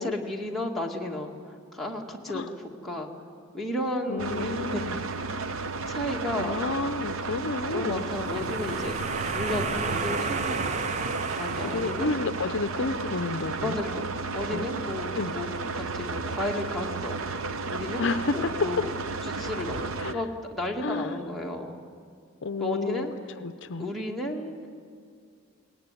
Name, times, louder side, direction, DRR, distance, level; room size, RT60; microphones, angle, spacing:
voice 1, 0.0-3.1 3.5-5.1 5.9-6.6 7.7-10.8 11.4-12.1 13.6-14.1 14.3-15.5 15.7-17.2 17.7-18.9 19.2-21.8 22.6-23.1 23.8-24.7, left 1 dB, ahead, -2 dB, 2.0 m, -33 dB
voice 2, 4.1-5.0 6.4-8.1 11.6-13.8 14.5-14.7 15.1-15.3 18.0-18.8 20.0-20.2 20.8-21.2 22.4-23.1 23.4-23.9, left 4 dB, 55° left, 11 dB, 0.6 m, -30 dB
sound 1, 4.2-20.1, right 3 dB, 70° right, 0.8 m, -33 dB
sound 2, 7.9-12.7, right 4 dB, 30° right, 0.6 m, -33 dB
22.0 x 18.5 x 9.7 m, 2.2 s
head